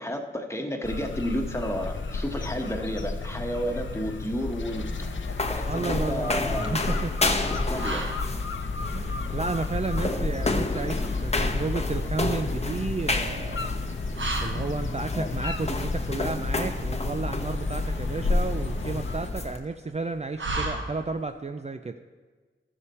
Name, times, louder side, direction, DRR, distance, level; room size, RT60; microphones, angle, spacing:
voice 1, 0.0-5.1 5.5-6.8 7.7-8.1 15.1-15.3, equal, 15° left, 3 dB, 1.2 m, -31 dB
sound 1, 0.8-19.3, left 3 dB, 70° left, 0.6 m, -33 dB
sound 2, 4.3-19.6, left 2 dB, 30° left, 0.9 m, -30 dB
sound 3, 4.4-21.4, right 2 dB, 70° right, 1.1 m, -39 dB
voice 2, 5.7-7.1 8.9-13.7 14.4-22.0, right 3 dB, 35° right, 7 dB, 0.4 m, -32 dB
13.0 x 6.9 x 4.3 m, 1.4 s
wide cardioid pair, 50°, 20 cm